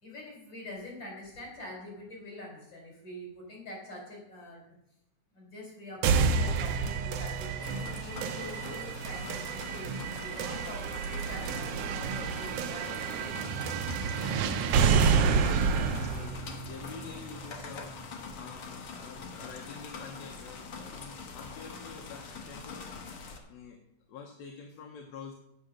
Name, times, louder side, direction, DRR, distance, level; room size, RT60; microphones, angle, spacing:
voice 1, 0.0-4.6 5.3-13.4, left 1 dB, 35° left, -2 dB, 5.5 m, -45 dB
sound 1, 6.0-18.0, right 5 dB, 90° right, 1.3 m, -29 dB
sound 2, 7.6-23.4, left 4 dB, 55° left, 1.8 m, -44 dB
voice 2, 14.9-17.9 18.3-22.9 23.5-23.8 24.1-25.3, left 5 dB, 70° left, 2 dB, 2.1 m, -47 dB
8.8 x 8.3 x 6.4 m, 0.81 s
omnidirectional pair, 3.5 m